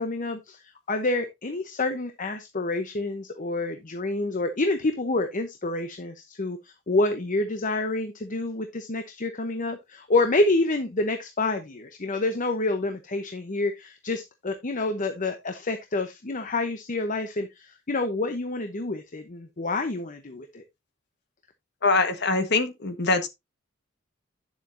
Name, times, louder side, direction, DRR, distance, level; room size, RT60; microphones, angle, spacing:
voice 1, 0.0-20.6, left 2 dB, 40° left, 0.9 m, -28 dB
voice 2, 21.8-23.3, left 3 dB, 60° left, 1.5 m, -23 dB
10.0 x 7.2 x 2.7 m
head